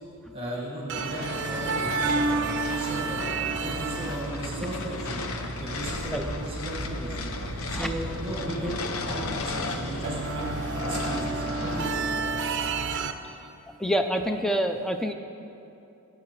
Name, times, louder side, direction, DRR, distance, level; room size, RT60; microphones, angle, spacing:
voice 1, 0.3-3.2 3.6-5.2 5.6-7.3 7.7-10.5 10.9-12.4, right 1 dB, 25° right, -5 dB, 1.8 m, -36 dB
sound 1, 0.9-12.0, left 3 dB, 65° left, 0.7 m, -35 dB
sound 2, 0.9-13.1, right 4 dB, 55° right, 0.5 m, -32 dB
sound 3, 5.8-10.3, right 1 dB, 20° left, 1.9 m, -43 dB
voice 2, 13.8-15.1, equal, ahead, 5 dB, 0.4 m, -26 dB
14.0 x 9.7 x 3.2 m, 2.8 s
head